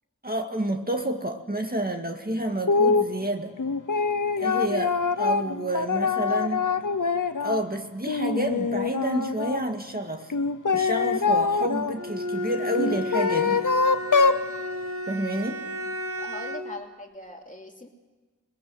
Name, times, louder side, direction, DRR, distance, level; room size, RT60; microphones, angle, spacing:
voice 1, 0.2-3.5 4.4-6.6 7.4-10.3 10.7-13.6 15.1-15.6, right 1 dB, 30° right, 4 dB, 2.0 m, -29 dB
sound 1, 2.7-3.1 3.6-7.6 8.0-9.6 10.3-11.9 12.7-14.4, left 4 dB, 90° left, 0.8 m, -24 dB
Bowed string instrument, 11.9-16.8, left 1 dB, 45° right, 2.2 m, -33 dB
voice 2, 16.2-17.9, left 2 dB, 25° left, 2 dB, 2.8 m, -41 dB
22.0 x 21.0 x 7.8 m, 1.3 s
wide cardioid pair, 40°, 30 cm